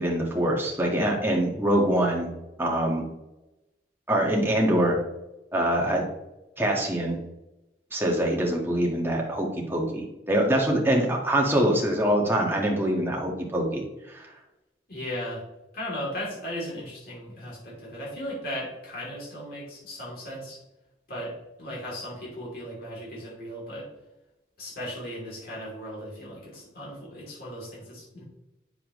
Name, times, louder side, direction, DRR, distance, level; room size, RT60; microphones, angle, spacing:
voice 1, 0.0-2.3 2.6-3.1 4.1-5.0 5.5-6.0 6.6-7.2 7.9-13.8 14.1-14.3, right 1 dB, 15° right, -1 dB, 1.5 m, -24 dB
voice 2, 14.9-15.4 15.7-20.6 21.1-21.3 21.6-23.9 24.6-28.2, equal, 60° left, -6 dB, 3.0 m, -36 dB
8.5 x 6.8 x 3.1 m, 0.96 s
head